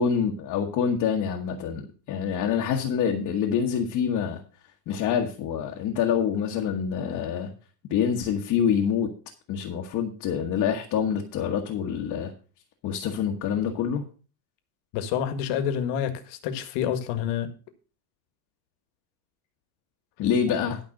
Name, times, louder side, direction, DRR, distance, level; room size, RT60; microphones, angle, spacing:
voice 1, 0.0-4.4 4.9-7.5 7.9-9.1 9.5-12.3 12.8-14.0 20.2-20.8, left 7 dB, 40° left, 1.4 m, -26 dB
voice 2, 14.9-17.5, left 9 dB, 55° left, 1.7 m, -28 dB
12.0 x 5.4 x 6.4 m
cardioid pair, 165°, 47 cm